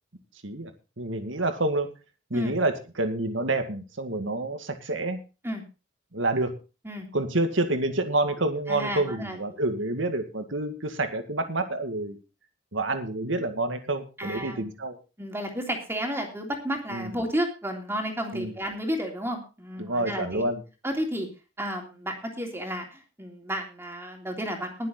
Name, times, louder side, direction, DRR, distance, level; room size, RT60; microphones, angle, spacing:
voice 1, 0.4-1.9 2.3-5.2 6.1-6.5 7.1-12.2 12.7-15.0 16.9-17.1 18.3-18.5 19.8-20.6, right 2 dB, 75° right, 7 dB, 2.1 m, -28 dB
voice 2, 8.7-9.4 14.2-14.6 15.2-20.5 20.8-21.3 21.6-24.9, equal, 10° right, 2 dB, 3.3 m, -32 dB
20.5 x 7.5 x 4.0 m, 0.32 s
head